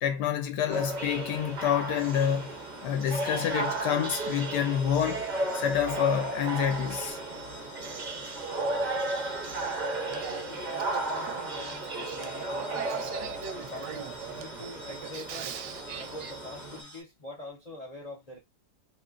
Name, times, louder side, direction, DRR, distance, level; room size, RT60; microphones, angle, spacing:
voice 1, 0.0-2.5 2.8-5.2 5.5-7.2, left 9 dB, 80° left, 1.1 m, -28 dB
sound 1, 0.7-16.8, right 2 dB, 60° right, 0.4 m, -34 dB
sound 2, 0.8-17.0, left 1 dB, 35° left, 1.0 m, -50 dB
Male speech man speaking / Female speech woman speaking / Conversation, 8.7-16.3, right 7 dB, 85° right, 1.2 m, -42 dB
voice 2, 10.1-13.4 13.7-15.6 16.0-18.4, left 1 dB, 55° left, 0.4 m, -44 dB
2.9 x 2.9 x 2.4 m
omnidirectional pair, 1.7 m